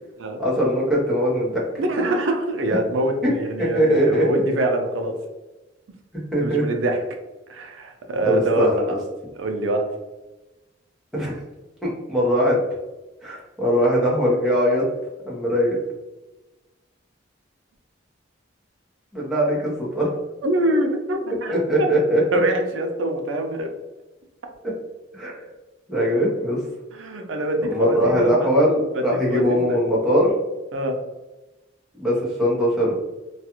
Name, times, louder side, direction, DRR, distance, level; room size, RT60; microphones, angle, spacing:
voice 1, 0.4-1.6 3.6-4.2 6.3-6.6 8.2-9.0 11.1-11.4 11.8-12.6 13.2-14.9 15.3-15.8 19.1-20.1 21.5-22.4 25.1-25.4 25.9-26.6 27.7-30.3 32.0-32.9, equal, ahead, -7 dB, 0.8 m, -21 dB
voice 2, 1.8-5.2 6.4-7.0 7.5-9.0 9.4-9.8 20.4-21.5 21.8-21.9 22.3-23.7 26.9-28.5 28.9-29.0 29.3-29.8 30.7-30.9, right 1 dB, 90° right, 4 dB, 0.5 m, -24 dB
2.3 x 2.3 x 2.8 m, 1.1 s
head